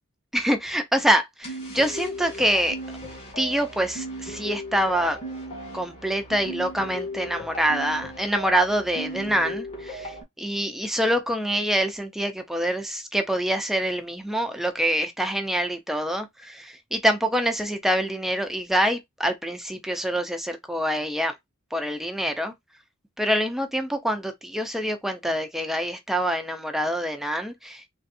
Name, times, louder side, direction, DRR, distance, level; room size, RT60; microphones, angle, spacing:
voice 1, 0.3-2.8 3.4-5.2 5.7-21.3 21.7-22.5 23.2-27.8, equal, ahead, 0.7 m, -25 dB
sound 1, 1.4-10.2, equal, 30° left, 2.3 m, -36 dB
4.1 x 3.2 x 2.6 m
head